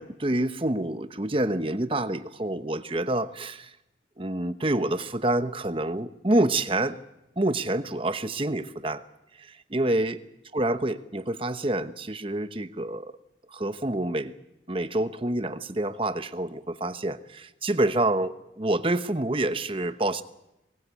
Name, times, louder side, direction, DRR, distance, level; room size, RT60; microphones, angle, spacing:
voice 1, 0.0-3.7 4.2-7.0 7.4-9.0 9.4-10.2 10.5-13.1 13.5-14.3 14.7-20.2, right 1 dB, 30° right, 11 dB, 1.0 m, -27 dB
22.5 x 19.5 x 8.4 m, 0.89 s
head